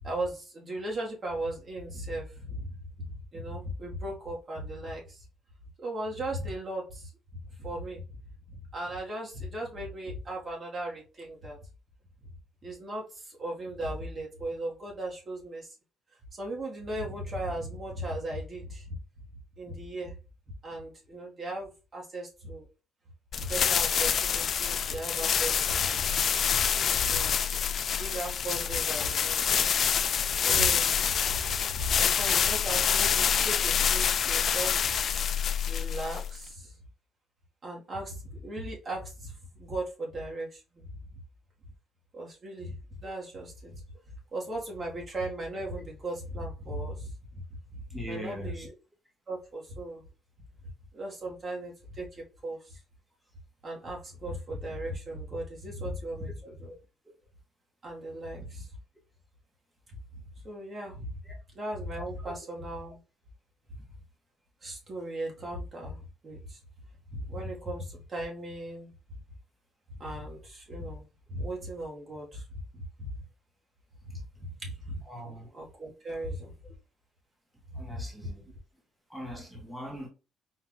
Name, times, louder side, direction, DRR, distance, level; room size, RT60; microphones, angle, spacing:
voice 1, 0.0-2.7 3.0-5.2 5.8-7.1 7.6-8.0 8.5-11.6 12.6-15.7 16.3-19.0 19.6-20.1 20.6-22.7 23.4-26.1 26.5-26.6 26.9-27.4 27.9-29.4 30.4-31.0 31.2-35.0 35.6-36.7 37.6-40.9 42.1-43.8 44.3-48.7 49.3-50.0 50.9-52.1 52.4-52.8 53.6-56.7 57.8-58.7 60.4-61.1 61.5-63.0 64.6-66.6 67.1-68.9 70.0-72.4 72.7-73.1 74.0-74.2 74.6-76.5 77.7-78.0, right 1 dB, 35° right, 1.6 m, -37 dB
sound 1, 23.3-36.5, left 8 dB, 50° left, 0.3 m, -27 dB
voice 2, 47.9-48.7 61.2-61.3 62.2-62.5 75.1-75.5 77.7-78.4 79.1-80.1, equal, ahead, 1.1 m, -41 dB
4.4 x 2.6 x 3.9 m
cardioid pair, 115°, 0 cm